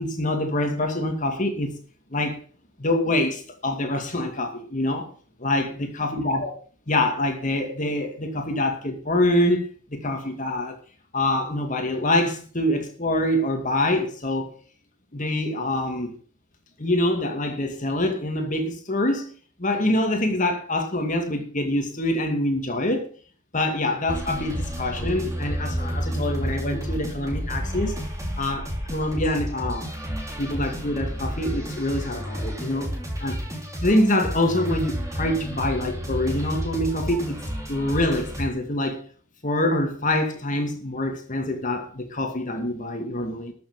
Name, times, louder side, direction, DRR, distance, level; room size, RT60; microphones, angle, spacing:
voice 1, 0.0-1.7 2.1-2.4 2.8-5.1 5.4-6.5 6.9-10.8 11.1-14.5 15.1-16.2 16.8-19.3 19.6-23.1 23.5-27.9 28.4-29.9 30.4-32.9 33.2-33.4 33.8-37.4 37.7-39.0 39.4-43.5, left 1 dB, 40° left, 4 dB, 2.2 m, -25 dB
sound 1, 24.1-38.5, equal, 15° right, 3.1 m, -31 dB
13.0 x 7.1 x 7.3 m, 0.42 s
head